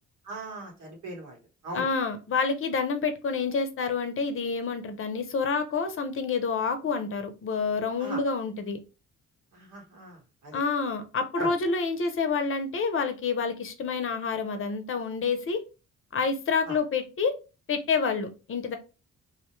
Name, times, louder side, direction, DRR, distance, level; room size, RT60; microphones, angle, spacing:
voice 1, 0.2-1.9 8.0-8.2 9.5-10.6 11.3-11.5 16.7-16.8, right 2 dB, 75° right, 1.4 m, -39 dB
voice 2, 1.7-8.8 10.5-15.6 16.1-17.3 17.7-18.8, left 5 dB, 45° left, 0.6 m, -28 dB
2.6 x 2.1 x 3.0 m
cardioid pair, 90°, 30 cm